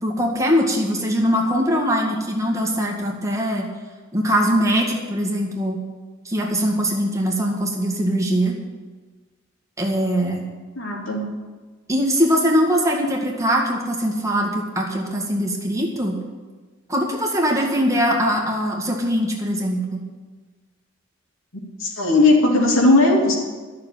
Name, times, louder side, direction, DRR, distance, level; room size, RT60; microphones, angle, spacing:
voice 1, 0.0-3.7 4.1-5.8 6.3-8.5 9.8-10.4 11.9-16.2 16.9-20.0, equal, 15° right, -1 dB, 2.0 m, -21 dB
voice 2, 10.8-11.3 21.5-23.4, left 2 dB, 85° left, -1 dB, 2.7 m, -17 dB
12.0 x 6.8 x 9.0 m, 1.3 s
head